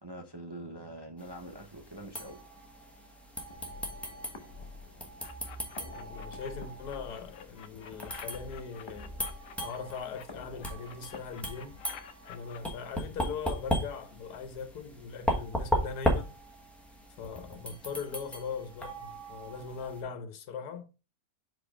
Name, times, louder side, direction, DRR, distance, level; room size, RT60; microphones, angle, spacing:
voice 1, 0.0-2.4, right 1 dB, 25° right, 0.6 m, -44 dB
sound 1, 1.2-20.0, equal, ahead, 1.0 m, -37 dB
sound 2, 3.5-12.5, left 2 dB, 25° left, 0.6 m, -49 dB
sound 3, 5.2-6.5 6.8-10.2 10.6-12.6, left 8 dB, 65° left, 1.1 m, -49 dB
voice 2, 6.0-9.2 9.6-11.8 12.3-16.3 17.2-20.9, left 6 dB, 90° left, 1.4 m, -40 dB
5.0 x 4.2 x 4.9 m
omnidirectional pair, 1.6 m